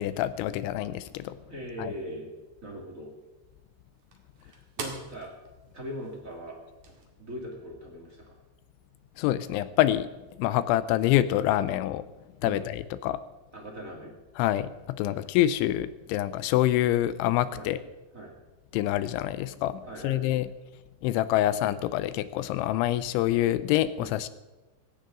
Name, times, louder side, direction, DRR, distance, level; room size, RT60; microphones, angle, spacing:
voice 1, 0.0-1.4 1.8-1.9 9.2-10.1 10.4-12.0 12.4-13.2 14.4-17.8 18.7-20.5 21.0-24.3, left 13 dB, 85° left, 14 dB, 2.9 m, -26 dB
voice 2, 1.5-2.3 2.6-3.1 4.4-5.3 5.7-6.6 7.2-8.4 12.4-12.6 13.5-14.2 15.0-15.2 17.5-17.7 18.1-18.3 19.8-20.3 24.0-24.1, equal, 35° right, -1 dB, 1.4 m, -40 dB
sound 1, 1.7-7.1, right 4 dB, 50° right, 2.6 m, -46 dB
17.5 x 17.0 x 3.8 m, 1.1 s
omnidirectional pair, 5.6 m